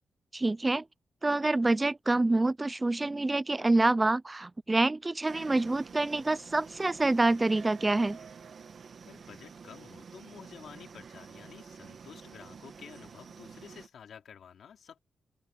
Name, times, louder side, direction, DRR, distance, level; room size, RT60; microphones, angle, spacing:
voice 1, 0.3-0.8 1.2-8.2, right 2 dB, 15° right, 0.3 m, -27 dB
sound 1, 5.3-13.9, right 6 dB, 50° right, 1.4 m, -49 dB
voice 2, 9.0-15.0, left 8 dB, 80° left, 2.9 m, -51 dB
open air
wide cardioid pair, 170°, 0 cm